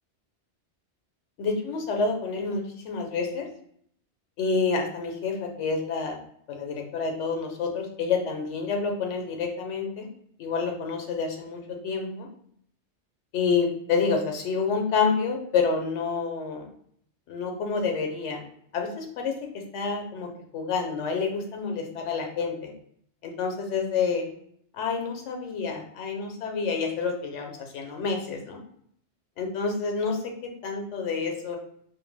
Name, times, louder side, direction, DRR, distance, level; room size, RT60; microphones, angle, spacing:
voice 1, 1.4-3.5 4.4-6.2 6.5-10.1 10.4-12.3 13.3-16.6 17.3-18.4 18.7-22.7 23.2-24.3 24.7-28.6 29.4-31.6, left 5 dB, 85° left, 3 dB, 0.9 m, -28 dB
2.5 x 2.1 x 3.2 m, 0.66 s
omnidirectional pair, 1.2 m